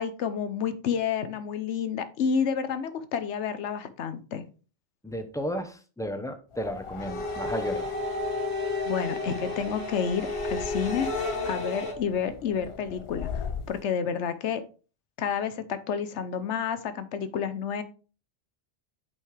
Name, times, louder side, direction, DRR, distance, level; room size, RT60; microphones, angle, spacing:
voice 1, 0.0-4.4 8.8-11.1 11.4-14.6 15.2-17.8, left 7 dB, 90° left, 12 dB, 1.1 m, -30 dB
voice 2, 5.0-7.9, equal, 5° left, 7 dB, 0.7 m, -33 dB
sound 1, 6.5-13.8, left 6 dB, 50° left, 0.4 m, -40 dB
sound 2, 7.0-11.9, left 2 dB, 70° left, 1.9 m, -32 dB
8.5 x 5.4 x 3.3 m, 0.37 s
omnidirectional pair, 1.1 m